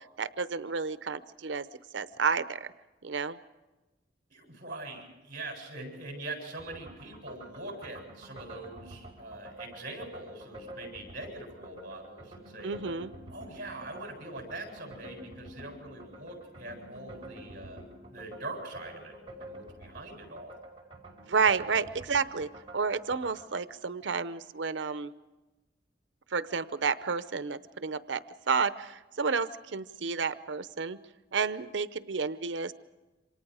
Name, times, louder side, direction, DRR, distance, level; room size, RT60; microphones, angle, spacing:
voice 1, 0.0-1.7 1.9-2.7 3.0-3.4 12.6-13.1 21.3-25.1 26.3-31.0 31.3-32.7, right 5 dB, 80° right, 13 dB, 0.7 m, -31 dB
voice 2, 4.3-12.8 13.3-17.8 18.1-20.6 21.7-21.8, right 2 dB, 50° right, 3 dB, 7.5 m, -43 dB
sound 1, 6.6-23.5, right 1 dB, 30° right, 5.0 m, -48 dB
28.0 x 25.5 x 4.9 m, 1.1 s
head